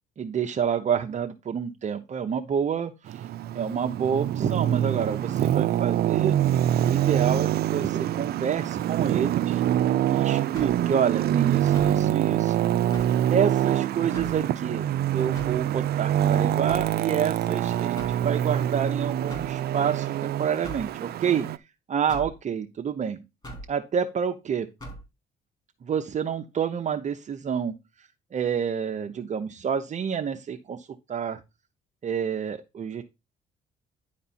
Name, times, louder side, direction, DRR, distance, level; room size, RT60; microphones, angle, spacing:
voice 1, 0.2-3.2 3.5-6.4 6.8-9.6 10.1-12.5 13.3-21.5 21.9-23.2 23.7-24.7 25.8-27.7 28.3-31.4 32.0-33.0, right 7 dB, 45° right, 4 dB, 0.8 m, -28 dB
Traffic noise roadway noise, 3.1-21.6, right 11 dB, 65° right, 0.5 m, -25 dB
sound 1, 10.5-10.9 11.7-12.0 12.9-13.2 14.1-14.4 15.3-15.6 16.7-17.0 18.0-18.2 19.3-19.5 20.6-20.9 22.1-22.3 23.4-23.7 24.8-25.0, right 1 dB, 25° left, 4.0 m, -40 dB
10.5 x 4.3 x 4.2 m, 0.24 s
cardioid pair, 100°, 17 cm